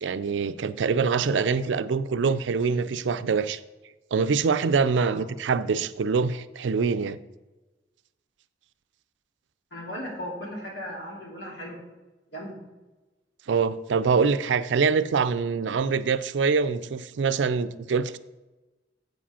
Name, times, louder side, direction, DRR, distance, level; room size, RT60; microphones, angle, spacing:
voice 1, 0.0-3.6 4.1-7.2 13.5-18.2, right 5 dB, 90° right, 0.4 m, -24 dB
voice 2, 9.7-11.8 12.3-12.6, equal, 70° left, 2.6 m, -37 dB
7.7 x 5.0 x 5.6 m
head